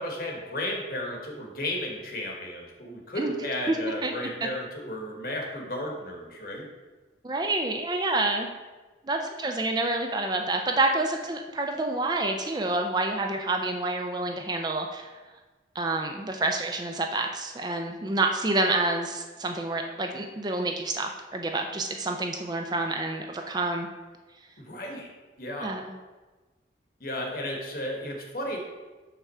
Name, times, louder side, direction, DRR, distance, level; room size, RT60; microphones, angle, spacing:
voice 1, 0.0-6.7 24.6-25.1 25.4-25.7 27.0-28.6, left 1 dB, 50° left, 0 dB, 1.1 m, -34 dB
voice 2, 7.2-8.5 9.0-15.1 15.8-23.9 25.6-25.9, right 2 dB, 20° right, 3 dB, 0.4 m, -28 dB
5.7 x 3.5 x 5.5 m, 1.2 s
head